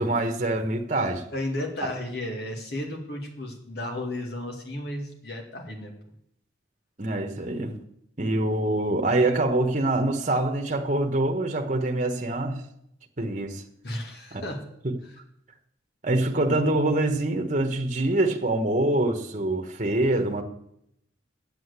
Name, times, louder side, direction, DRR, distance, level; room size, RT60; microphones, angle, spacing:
voice 1, 0.0-1.2 7.0-7.8 8.2-12.6 13.2-13.6 14.3-14.4 14.8-15.0 16.0-20.4, right 2 dB, 40° right, 4 dB, 1.2 m, -25 dB
voice 2, 1.3-5.9 13.8-14.6 15.0-15.2, left 1 dB, 55° left, 2 dB, 2.3 m, -33 dB
9.1 x 7.8 x 8.1 m, 0.75 s
head